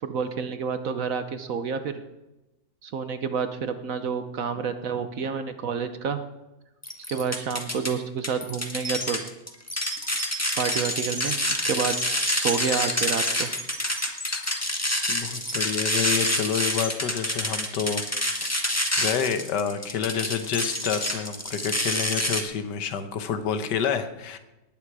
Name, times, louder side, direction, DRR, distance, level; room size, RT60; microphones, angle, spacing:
voice 1, 0.0-1.9 2.8-6.2 7.1-9.2 10.6-12.0 12.3-13.5, right 6 dB, 60° right, 9 dB, 1.1 m, -29 dB
sound 1, 6.8-7.9 8.2-22.4, left 1 dB, 10° left, 1.4 m, -27 dB
voice 2, 15.1-24.4, left 7 dB, 70° left, 9 dB, 1.6 m, -29 dB
19.5 x 9.3 x 4.8 m, 1.0 s
omnidirectional pair, 1.9 m